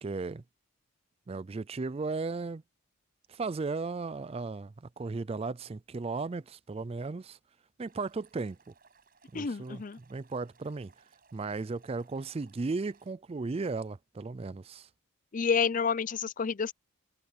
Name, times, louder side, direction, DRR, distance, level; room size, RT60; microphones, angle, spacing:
voice 1, 0.0-0.4 1.3-2.6 3.3-7.4 7.8-8.6 9.3-9.8 10.1-10.9 11.3-14.9, right 3 dB, 25° right, 0.3 m, -35 dB
Stream, 7.9-13.1, right 5 dB, 45° right, 7.9 m, -64 dB
voice 2, 9.3-10.0 15.3-16.7, left 6 dB, 40° left, 0.5 m, -29 dB
head